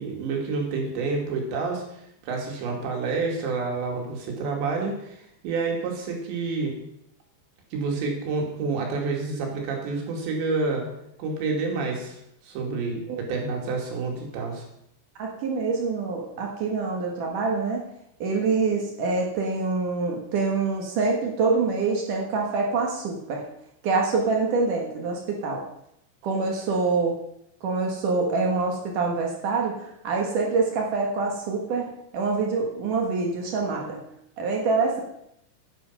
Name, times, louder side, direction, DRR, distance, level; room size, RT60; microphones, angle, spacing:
voice 1, 0.0-1.8 2.2-6.8 7.7-10.9 11.2-12.2 12.5-14.6, right 4 dB, 85° right, 1 dB, 4.4 m, -28 dB
voice 2, 15.2-17.8 18.2-23.4 23.8-25.6 26.2-27.1 27.6-34.0 34.4-35.0, right 4 dB, 60° right, 0 dB, 2.6 m, -25 dB
9.7 x 9.7 x 5.6 m, 0.76 s
omnidirectional pair, 5.0 m